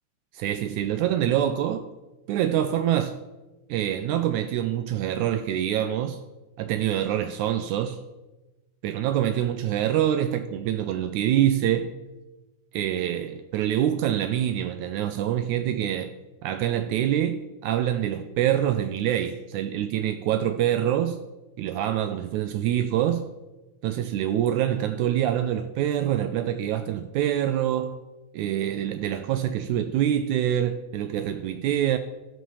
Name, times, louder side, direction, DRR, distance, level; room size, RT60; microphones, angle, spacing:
voice 1, 0.3-1.9 2.3-3.2 3.7-6.2 6.6-8.0 8.8-11.9 12.7-16.1 16.4-21.2 21.6-23.3 23.8-28.0 28.3-32.0, right 11 dB, 80° right, 2.0 m, -25 dB
14.0 x 6.3 x 7.0 m
omnidirectional pair, 3.6 m